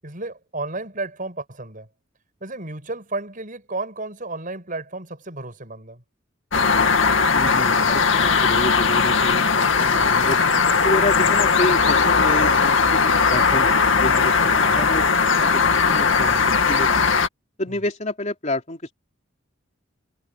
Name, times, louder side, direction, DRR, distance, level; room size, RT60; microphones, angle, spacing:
voice 1, 0.0-1.9 2.4-6.0 14.5-14.8 17.7-17.8, right 2 dB, 45° right, 7.2 m, -33 dB
sound 1, 6.5-17.3, left 5 dB, 80° left, 2.1 m, -18 dB
voice 2, 7.3-10.4 10.8-15.1 15.4-17.1 17.6-18.9, left 1 dB, 35° left, 3.6 m, -29 dB
head